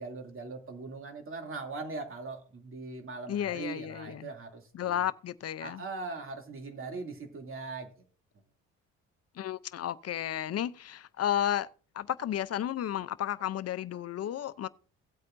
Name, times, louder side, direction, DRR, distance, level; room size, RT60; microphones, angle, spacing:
voice 1, 0.0-5.0 5.6-7.9, right 3 dB, 45° right, 2.8 m, -40 dB
voice 2, 3.3-4.3 4.7-5.8 9.3-11.7 11.9-14.7, left 11 dB, 55° left, 0.7 m, -33 dB
17.0 x 8.3 x 2.6 m
cardioid pair, 90°, 30 cm